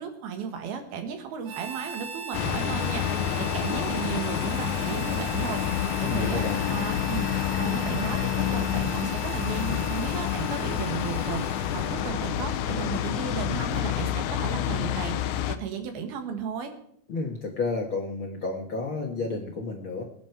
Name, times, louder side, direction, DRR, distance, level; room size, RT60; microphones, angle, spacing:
voice 1, 0.0-16.7, right 7 dB, 90° right, 6 dB, 3.6 m, -35 dB
Harmonica, 1.4-12.5, right 7 dB, 70° right, 5.7 m, -40 dB
sound 1, 2.3-15.6, left 11 dB, 75° left, 1.8 m, -28 dB
voice 2, 6.0-6.6 17.1-20.0, left 3 dB, 55° left, 1 dB, 1.5 m, -31 dB
22.0 x 9.6 x 4.6 m, 0.67 s
omnidirectional pair, 4.2 m